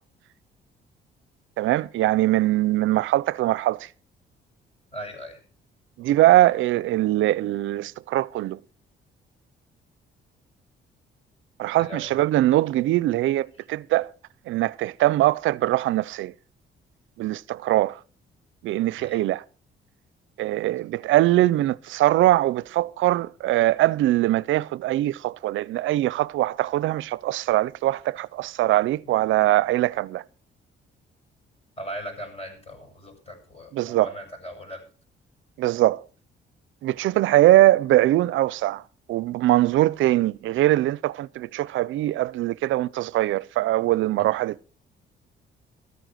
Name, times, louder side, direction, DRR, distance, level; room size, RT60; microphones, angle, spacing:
voice 1, 1.6-3.9 6.0-8.6 11.6-14.1 14.5-16.3 17.2-18.0 18.6-19.4 20.4-30.2 33.7-34.1 35.6-36.0 36.8-38.8 39.1-44.7, right 15 dB, 80° right, 0.5 m, -22 dB
voice 2, 4.9-5.4 11.8-12.1 19.0-19.2 30.2-30.3 31.8-34.8 44.2-44.3, equal, 30° left, 7.5 m, -39 dB
13.5 x 9.1 x 6.3 m
cardioid pair, 90°, 20 cm